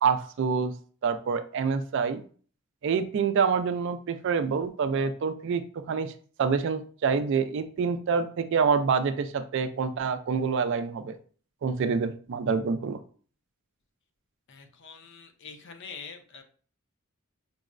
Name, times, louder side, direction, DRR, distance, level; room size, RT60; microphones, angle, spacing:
voice 1, 0.0-0.7 1.0-2.2 2.8-5.6 5.9-6.1 6.4-11.2 11.6-13.0, right 5 dB, 55° right, 9 dB, 0.3 m, -26 dB
voice 2, 14.5-16.4, left 5 dB, 55° left, 6 dB, 0.5 m, -45 dB
5.3 x 2.0 x 2.4 m, 0.43 s
head